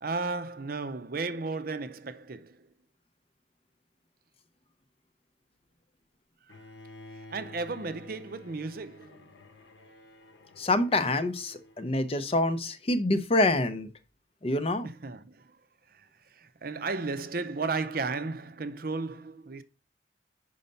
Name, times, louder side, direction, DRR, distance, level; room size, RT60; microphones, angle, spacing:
voice 1, 0.0-2.7 7.3-9.3 14.8-15.6 15.9-19.6, right 3 dB, 50° right, 0.6 m, -34 dB
Bowed string instrument, 6.5-12.6, left 2 dB, 75° left, 1.0 m, -51 dB
voice 2, 10.6-13.9 14.4-14.9, left 2 dB, 30° left, 0.5 m, -26 dB
5.6 x 5.2 x 5.2 m
head